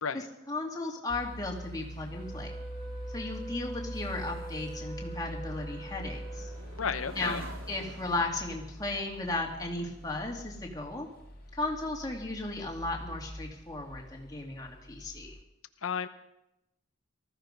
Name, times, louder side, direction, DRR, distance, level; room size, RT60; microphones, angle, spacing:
voice 1, 0.1-2.5 3.1-6.5 7.1-7.4 7.7-11.1 11.5-15.4, left 2 dB, 20° left, 0 dB, 2.4 m, -35 dB
sound 1, 0.8-12.5 12.9-13.2, right 1 dB, 80° right, 2.7 m, -52 dB
sound 2, 1.1-15.4, equal, 45° left, 2.0 m, -44 dB
Wind instrument woodwind instrument, 2.1-6.8, right 2 dB, 20° right, 7.5 m, -45 dB
voice 2, 6.8-7.4 15.8-16.1, left 6 dB, 90° left, 9 dB, 0.8 m, -32 dB
19.0 x 14.0 x 5.3 m, 0.90 s
head